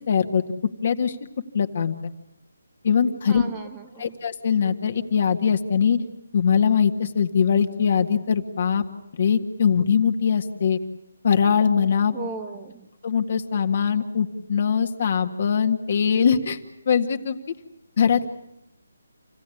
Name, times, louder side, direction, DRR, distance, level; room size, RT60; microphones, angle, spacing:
voice 1, 0.1-0.4 0.8-1.2 1.5-1.9 2.8-3.4 4.0-6.0 6.3-8.8 9.1-10.8 11.2-12.1 13.0-16.6 16.9-17.4 18.0-18.3, left 7 dB, 45° left, 5 dB, 1.8 m, -21 dB
voice 2, 3.3-4.2 12.1-12.9, right 3 dB, 10° right, 4 dB, 1.3 m, -36 dB
28.0 x 16.5 x 9.9 m, 0.85 s
hypercardioid pair, 170°, 0 cm